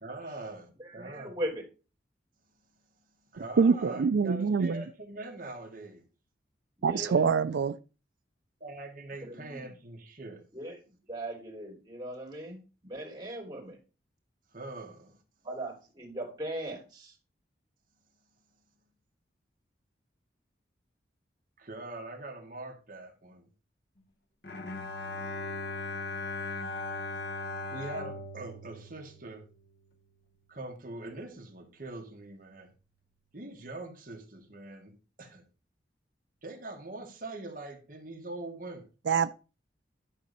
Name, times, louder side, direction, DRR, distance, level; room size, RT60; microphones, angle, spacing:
voice 1, 0.0-1.4 3.3-6.0 7.0-7.1 8.6-10.4 14.5-15.2 21.6-23.5 27.7-29.4 30.5-32.7 33.3-34.9 35.2-35.4 36.4-38.9, right 2 dB, 45° right, 1.9 m, -43 dB
voice 2, 0.8-1.6 3.9-4.0 6.8-7.3 9.2-9.7 10.5-10.8 11.1-13.8 15.4-17.1, right 1 dB, 20° right, 3.2 m, -39 dB
voice 3, 3.6-4.8 6.8-7.8 39.1-39.3, right 5 dB, 75° right, 0.4 m, -25 dB
Bowed string instrument, 24.4-29.8, left 3 dB, 60° left, 1.4 m, -38 dB
11.0 x 4.0 x 6.8 m
head